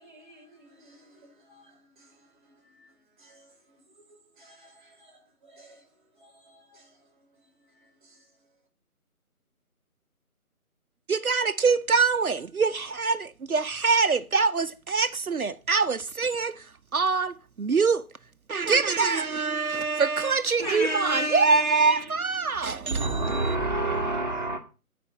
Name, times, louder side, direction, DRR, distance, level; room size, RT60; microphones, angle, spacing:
voice 1, 0.0-8.5, right 1 dB, 10° right, 1.6 m, -57 dB
voice 2, 11.1-18.1 18.5-23.6, right 4 dB, 70° right, 0.8 m, -25 dB
voice 3, 20.6-22.0 22.9-24.6, right 2 dB, 30° right, 1.0 m, -27 dB
10.5 x 5.2 x 7.2 m
figure-of-eight pair, 160°, 45 cm